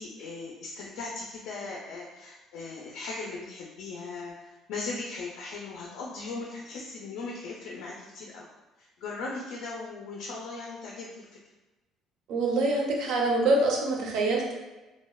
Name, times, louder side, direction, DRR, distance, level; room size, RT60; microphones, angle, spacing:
voice 1, 0.0-8.5 8.8-11.3, left 3 dB, 75° left, -2 dB, 0.3 m, -38 dB
voice 2, 12.3-14.5, right 2 dB, 65° right, -1 dB, 0.5 m, -25 dB
2.8 x 2.0 x 2.2 m, 1.1 s
cardioid pair, 165°, 0 cm